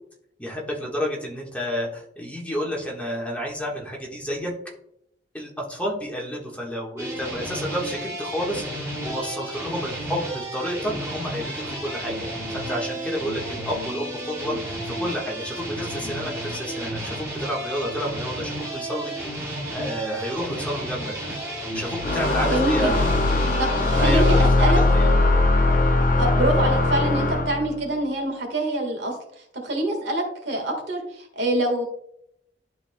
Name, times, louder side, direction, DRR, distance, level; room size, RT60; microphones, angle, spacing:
voice 1, 0.4-4.5 5.3-12.2 12.5-19.4 19.7-21.2 21.7-23.0 24.0-25.2, equal, 10° left, -3 dB, 1.4 m, -30 dB
sound 1, 7.0-24.5, right 1 dB, 15° right, 2.6 m, -32 dB
sound 2, 22.0-27.7, left 2 dB, 50° left, 0.7 m, -20 dB
voice 2, 22.4-23.1 23.6-24.8 26.2-29.1 29.6-31.9, right 1 dB, 80° right, 3 dB, 1.6 m, -25 dB
11.5 x 4.1 x 2.2 m, 0.75 s
head